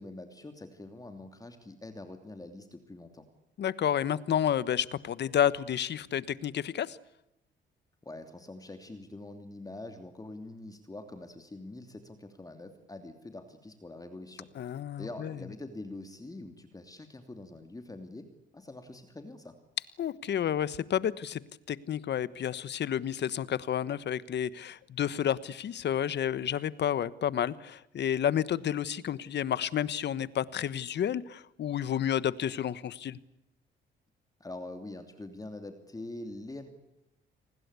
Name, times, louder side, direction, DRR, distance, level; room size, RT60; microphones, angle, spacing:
voice 1, 0.0-3.2 8.0-14.5 15.0-18.3 18.5-19.5 34.4-36.7, left 2 dB, 20° left, 6 dB, 2.9 m, -44 dB
voice 2, 3.6-7.0 14.5-15.4 20.0-21.4 21.7-33.2, left 9 dB, 60° left, 17 dB, 1.2 m, -30 dB
29.5 x 20.5 x 8.3 m, 0.87 s
cardioid pair, 90°, 20 cm